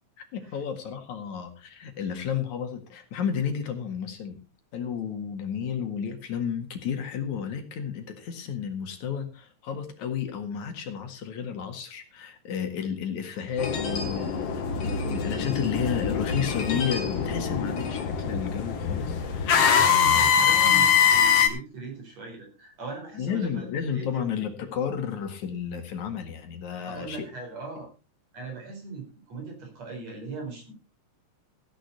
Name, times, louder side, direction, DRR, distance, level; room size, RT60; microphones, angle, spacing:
voice 1, 0.3-4.4 4.7-19.8 20.1-20.9 23.2-27.3, left 7 dB, 80° left, 6 dB, 3.3 m, -32 dB
sound 1, 13.6-21.5, left 7 dB, 55° left, 2.6 m, -23 dB
voice 2, 19.7-23.7 23.9-24.3 26.9-27.9 28.3-30.7, right 4 dB, 65° right, 3 dB, 5.8 m, -39 dB
15.5 x 10.5 x 4.2 m, 0.31 s
omnidirectional pair, 3.3 m